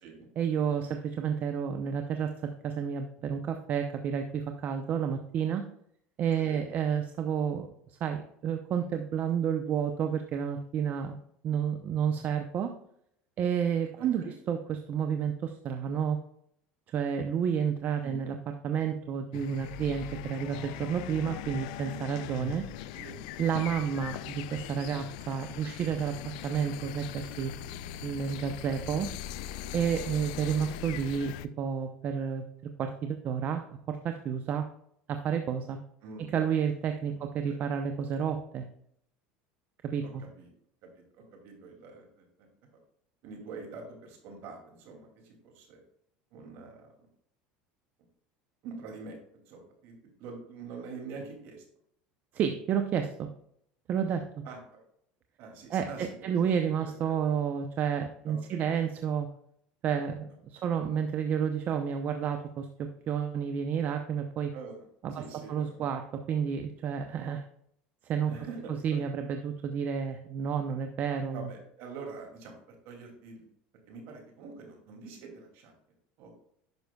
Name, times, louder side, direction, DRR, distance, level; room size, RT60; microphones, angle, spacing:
voice 1, 0.4-5.6 6.2-7.7 8.0-11.1 11.4-12.7 13.4-16.2 16.9-18.3 18.6-22.6 23.4-27.5 28.0-29.1 29.7-32.4 32.8-34.7 35.1-35.8 36.3-38.6 39.8-40.2 52.3-53.3 53.9-54.2 55.7-59.3 59.8-64.5 65.0-65.2 65.5-67.4 68.0-68.3 68.8-71.5, right 7 dB, 45° right, 6 dB, 0.7 m, -30 dB
voice 2, 6.4-6.7 14.0-14.3 18.0-18.2 22.9-23.2 36.0-36.3 37.1-37.2 37.5-37.6 40.0-40.5 40.8-42.5 43.2-45.8 46.3-47.1 48.6-51.6 54.4-54.8 55.4-57.3 58.3-58.6 64.5-64.9 65.1-65.9 68.2-69.0 71.3-73.4 73.9-75.7 76.2-76.3, right 4 dB, 65° right, 2 dB, 2.6 m, -45 dB
sound 1, 19.3-31.5, left 11 dB, 75° left, 0.4 m, -40 dB
10.5 x 5.9 x 2.3 m, 0.70 s
supercardioid pair, 105°, 4 cm